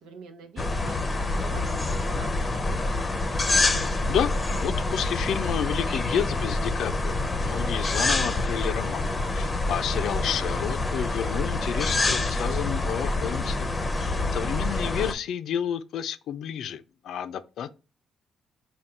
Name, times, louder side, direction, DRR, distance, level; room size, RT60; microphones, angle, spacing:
voice 1, 0.0-3.0 14.1-14.7, right 4 dB, 90° right, 0.8 m, -45 dB
sound 1, 0.6-15.1, left 2 dB, 25° left, 0.6 m, -27 dB
voice 2, 4.6-13.7 14.0-17.7, left 9 dB, 75° left, 0.4 m, -31 dB
3.6 x 2.3 x 4.3 m
cardioid pair, 90°, 0 cm